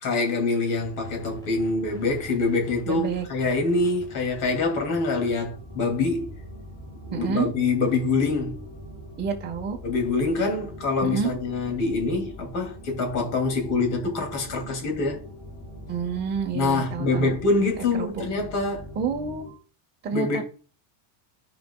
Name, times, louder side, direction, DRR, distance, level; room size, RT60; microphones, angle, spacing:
voice 1, 0.0-6.3 7.1-8.6 9.8-15.2 16.5-18.8 20.1-20.4, left 3 dB, 40° left, 2.6 m, -25 dB
sound 1, 0.8-19.5, equal, 10° left, 4.2 m, -43 dB
voice 2, 2.9-3.3 7.1-7.5 9.2-9.8 11.0-11.3 15.9-17.3 17.8-18.3 18.9-19.5 20.0-20.4, right 6 dB, 20° right, 1.2 m, -29 dB
14.0 x 5.3 x 2.3 m
cardioid pair, 165°, 49 cm